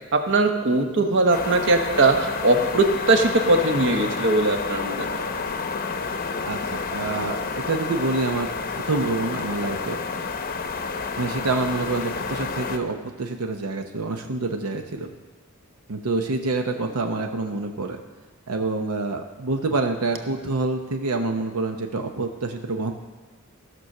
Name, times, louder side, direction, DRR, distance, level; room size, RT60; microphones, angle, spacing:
voice 1, 0.1-5.2, right 2 dB, 55° right, 5 dB, 1.0 m, -20 dB
sound 1, 1.3-12.8, left 4 dB, 40° left, 0.7 m, -30 dB
voice 2, 6.5-8.5 8.9-10.0 11.2-15.1 15.9-18.0 18.5-22.9, right 3 dB, 85° right, 5 dB, 0.8 m, -27 dB
15.0 x 6.2 x 6.5 m, 1.3 s
head